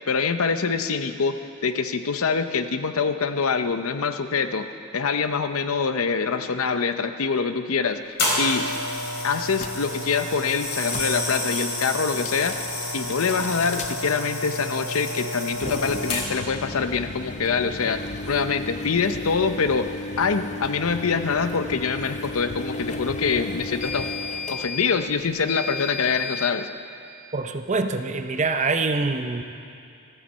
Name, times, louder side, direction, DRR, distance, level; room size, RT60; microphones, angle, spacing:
voice 1, 0.1-1.4 1.6-4.7 4.9-8.0 8.4-8.7 9.2-12.6 12.9-19.9 20.2-24.1 24.5-26.7, left 5 dB, 75° left, 9 dB, 0.7 m, -25 dB
sound 1, 8.2-16.5 17.3-17.5, left 1 dB, 55° left, 3.6 m, -29 dB
sound 2, 9.6-9.8 10.7-11.1 12.0-12.7 13.2-13.9 15.5-26.5, left 2 dB, 30° left, 0.6 m, -34 dB
voice 2, 27.3-29.4, right 3 dB, 35° right, 7 dB, 0.6 m, -25 dB
13.5 x 9.7 x 7.4 m, 2.6 s
head